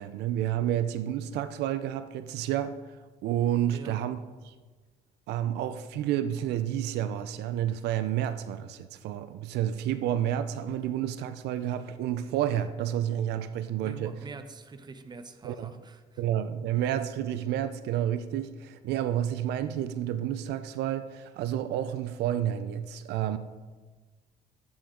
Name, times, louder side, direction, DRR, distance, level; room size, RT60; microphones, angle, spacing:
voice 1, 0.0-2.8 3.2-4.2 4.4-4.5 5.3-14.1 15.4-15.7 16.2-23.4, right 11 dB, 80° right, 0.6 m, -30 dB
voice 2, 3.7-4.1 13.8-16.2, right 4 dB, 25° right, 0.9 m, -45 dB
12.0 x 8.8 x 3.8 m
cardioid pair, 110°, 17 cm